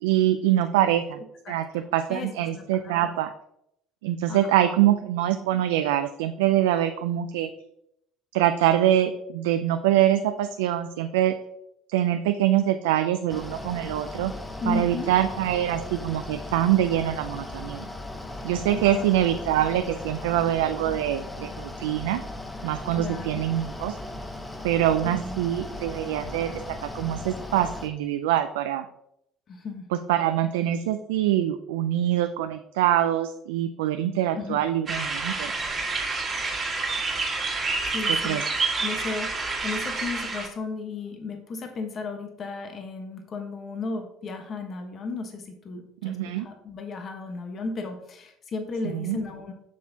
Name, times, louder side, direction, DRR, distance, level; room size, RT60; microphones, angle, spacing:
voice 1, 0.0-1.2 1.5-3.3 4.0-7.5 8.3-11.3 11.9-14.3 14.7-17.8 18.4-22.2 22.6-24.0 24.6-26.6 26.9-28.8 30.1-35.5 38.2-38.4 46.0-46.5 48.9-49.2, right 12 dB, 85° right, 8 dB, 0.3 m, -24 dB
voice 2, 1.4-3.1 4.3-4.8 14.6-15.1 18.7-19.1 20.8-21.0 22.9-23.4 25.2-25.4 29.5-29.9 34.3-34.6 37.9-38.4 38.8-49.5, left 3 dB, 45° left, 5 dB, 1.2 m, -35 dB
Mechanical fan, 13.3-27.9, left 2 dB, 10° left, 1.0 m, -37 dB
sound 1, 34.9-40.5, right 3 dB, 35° right, 1.6 m, -28 dB
7.2 x 6.0 x 2.8 m, 0.77 s
hypercardioid pair, 70°, 0 cm